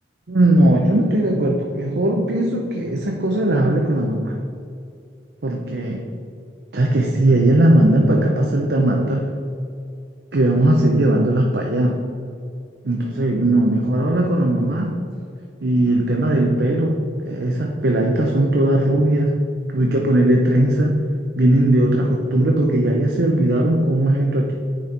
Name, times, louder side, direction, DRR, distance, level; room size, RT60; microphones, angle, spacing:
voice 1, 0.3-4.3 5.4-6.1 6.7-9.3 10.3-12.0 12.8-14.9 15.6-19.3 19.7-21.1 21.3-24.5, right 1 dB, 65° right, 0 dB, 0.7 m, -18 dB
9.4 x 4.4 x 3.9 m, 2.4 s
head